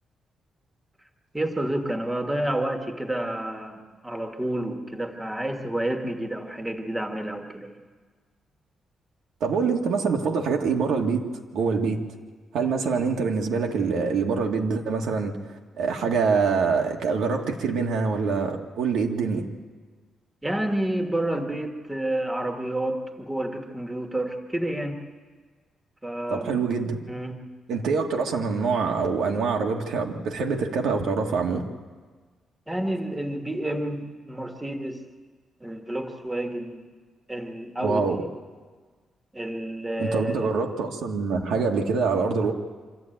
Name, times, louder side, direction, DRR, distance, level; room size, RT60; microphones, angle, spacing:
voice 1, 1.3-7.8 20.4-25.0 26.0-26.5 27.1-27.4 32.7-35.0 35.6-36.8 37.3-38.0 39.3-40.4, right 1 dB, 10° right, 4 dB, 1.6 m, -29 dB
voice 2, 9.4-11.3 11.5-12.0 12.5-15.4 15.8-19.4 26.3-27.0 27.7-31.7 37.8-38.2 40.0-42.5, right 5 dB, 85° right, 2 dB, 2.0 m, -25 dB
25.5 x 13.5 x 9.1 m, 1.5 s
wide cardioid pair, 160°, 0 cm